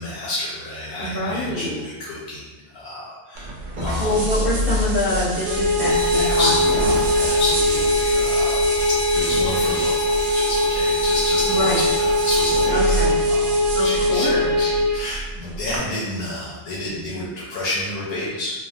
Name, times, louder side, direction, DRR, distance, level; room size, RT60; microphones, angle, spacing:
voice 1, 0.0-4.2 6.1-18.5, left 1 dB, 85° left, -7 dB, 1.1 m, -30 dB
voice 2, 1.0-1.7 4.0-6.8 11.5-11.8 12.7-13.2 13.7-14.5, left 1 dB, 35° left, -6 dB, 0.5 m, -25 dB
sound 1, 3.3-15.8, right 1 dB, 70° right, 0.4 m, -28 dB
sound 2, 5.4-15.0, left 1 dB, 90° right, 1.1 m, -21 dB
sound 3, 5.9-12.7, right 1 dB, 65° left, 0.8 m, -29 dB
3.1 x 2.3 x 2.5 m, 1.2 s
omnidirectional pair, 1.5 m